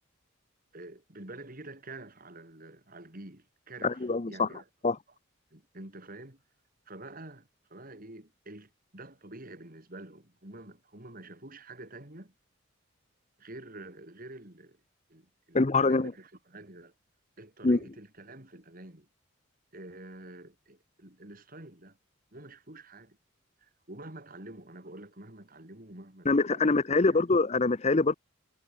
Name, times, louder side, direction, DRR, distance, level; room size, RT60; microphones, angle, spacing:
voice 1, 0.7-4.6 5.5-6.4 6.9-12.3 13.4-14.8 15.1-16.9 17.4-19.1 19.7-22.0 22.3-23.2 23.6-26.3 26.5-27.0, right 2 dB, 45° right, 3.9 m, -47 dB
voice 2, 3.8-4.5 4.8-5.0 15.5-16.1 17.6-17.8 26.3-28.1, left 3 dB, 35° left, 0.7 m, -24 dB
head